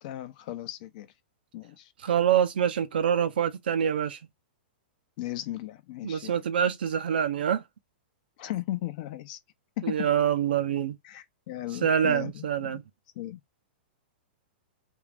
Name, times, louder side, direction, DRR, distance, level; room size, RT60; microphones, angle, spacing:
voice 1, 0.0-1.1 1.5-1.9 5.2-6.4 8.4-9.4 9.8-10.1 11.0-12.8 13.2-13.4, left 15 dB, 55° left, 0.6 m, -36 dB
voice 2, 2.0-4.2 6.0-7.6 9.8-11.0 11.8-12.8, right 8 dB, 75° right, 0.6 m, -25 dB
2.6 x 2.4 x 3.4 m
hypercardioid pair, 120°, 5 cm